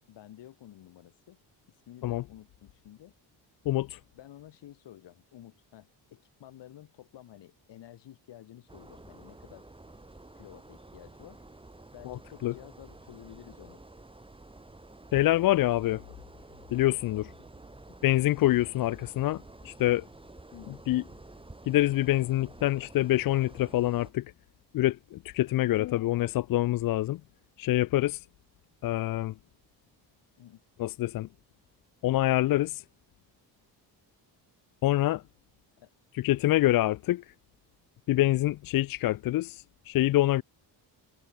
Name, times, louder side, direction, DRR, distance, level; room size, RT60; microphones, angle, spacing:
voice 1, 0.1-1.4 1.9-3.1 4.1-9.7 10.3-11.4 11.9-13.8 15.3-16.0 20.5-20.8 30.4-30.6 35.8-35.9, left 12 dB, 75° left, 5.1 m, -51 dB
voice 2, 3.7-4.0 12.0-12.5 15.1-16.0 16.7-17.3 18.0-20.1 20.9-21.0 21.7-24.3 24.7-27.2 27.6-28.3 28.8-29.4 30.8-31.3 32.0-32.8 34.8-35.2 36.1-37.3 38.1-40.4, left 15 dB, 55° left, 0.5 m, -26 dB
sound 1, 8.7-24.1, right 2 dB, 10° right, 6.4 m, -51 dB
cardioid pair, 130°, 43 cm